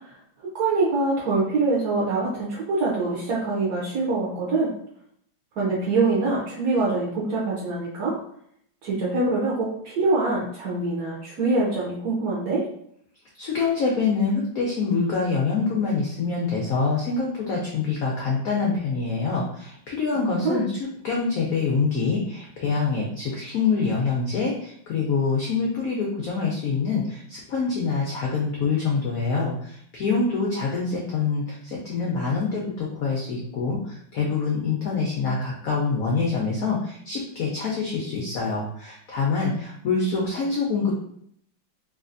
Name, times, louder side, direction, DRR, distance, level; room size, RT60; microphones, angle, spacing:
voice 1, 0.5-4.7 5.6-8.1 8.8-12.6 20.3-20.6, right 3 dB, 65° right, -5 dB, 1.0 m, -24 dB
voice 2, 13.4-20.7 21.0-40.9, left 4 dB, 80° left, -2 dB, 0.7 m, -25 dB
3.2 x 2.6 x 2.5 m, 0.68 s
omnidirectional pair, 2.2 m